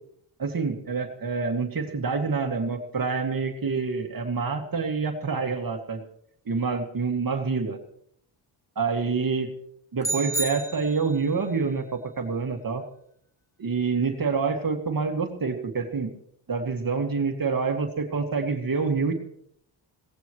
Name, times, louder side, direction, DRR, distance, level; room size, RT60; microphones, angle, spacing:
voice 1, 0.4-6.0 6.5-7.8 8.8-9.5 9.9-12.8 13.6-16.1 16.5-19.1, right 4 dB, 45° right, 4 dB, 2.2 m, -27 dB
sound 1, 10.0-11.3, right 3 dB, 5° left, 2.1 m, -31 dB
21.5 x 17.5 x 3.1 m, 0.66 s
cardioid pair, 80°, 46 cm